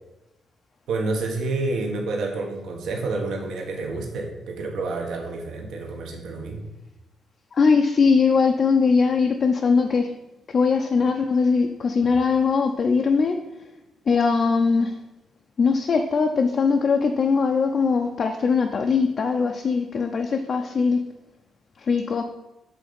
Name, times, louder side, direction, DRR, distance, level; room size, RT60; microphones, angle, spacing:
voice 1, 0.9-6.7, right 3 dB, 80° right, 1 dB, 1.3 m, -29 dB
voice 2, 7.5-10.1 10.5-13.4 14.1-14.9 15.6-21.0 21.9-22.2, left 5 dB, 35° left, 4 dB, 0.4 m, -21 dB
7.7 x 3.9 x 5.1 m, 0.99 s
cardioid pair, 165°, 0 cm